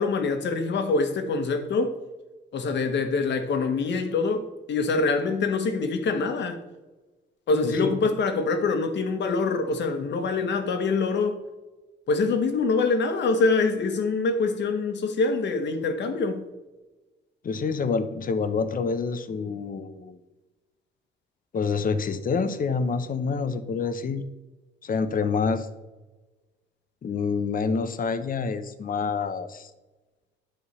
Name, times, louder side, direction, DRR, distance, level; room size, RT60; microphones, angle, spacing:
voice 1, 0.0-2.0 2.5-6.6 7.5-11.4 12.1-16.4, left 4 dB, 65° left, 1.3 m, -25 dB
voice 2, 17.4-20.2 21.5-24.2 24.8-25.7 27.0-29.7, left 5 dB, 45° left, 0.8 m, -27 dB
9.8 x 3.7 x 6.8 m
cardioid pair, 90°, 20 cm